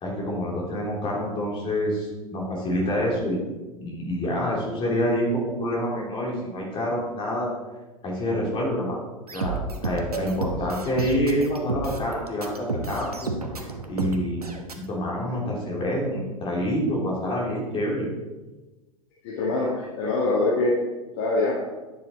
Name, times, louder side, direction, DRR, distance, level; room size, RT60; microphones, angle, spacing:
voice 1, 0.0-3.4 3.8-7.5 8.0-9.0 9.3-13.3 13.6-14.4 14.9-18.1, equal, 30° left, -3 dB, 3.1 m, -27 dB
sound 1, 9.3-14.7, right 3 dB, 80° right, 1.0 m, -31 dB
voice 2, 19.2-20.8 21.2-21.5, left 2 dB, 50° left, -3 dB, 1.6 m, -24 dB
10.0 x 6.6 x 4.1 m, 1.2 s
figure-of-eight pair, 90°, 19 cm